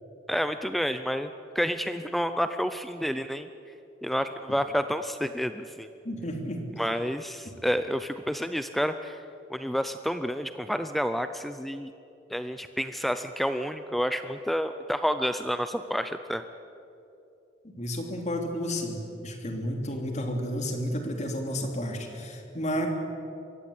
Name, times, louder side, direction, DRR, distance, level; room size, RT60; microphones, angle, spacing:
voice 1, 0.3-3.5 4.0-5.9 6.8-9.2 9.5-11.9 12.3-16.4, equal, ahead, 10 dB, 0.5 m, -29 dB
voice 2, 6.0-6.6 17.8-22.9, equal, 40° left, 3 dB, 2.9 m, -31 dB
22.5 x 16.5 x 8.5 m, 2.7 s
head